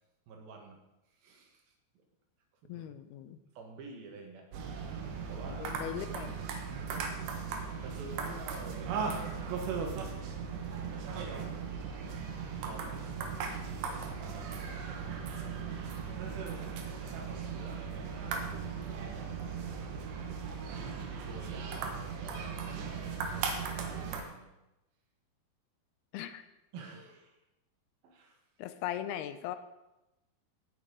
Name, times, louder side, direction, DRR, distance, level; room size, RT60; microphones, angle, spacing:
voice 1, 0.3-0.8 1.1-2.0 2.6-2.8 3.5-5.7 6.7-7.4 7.8-10.0 10.8-11.8 12.6-13.1 13.5-15.6 16.3-18.7 19.0-20.3 21.1-24.5 26.7-27.4 28.0-28.4, right 3 dB, 65° right, 2 dB, 3.3 m, -51 dB
voice 2, 2.7-3.4 5.6-6.4 26.1-26.4 28.6-29.6, left 11 dB, 80° left, 10 dB, 2.5 m, -39 dB
sound 1, 4.5-24.2, right 5 dB, 80° right, 3.5 m, -37 dB
17.5 x 6.8 x 5.3 m, 0.95 s
omnidirectional pair, 4.9 m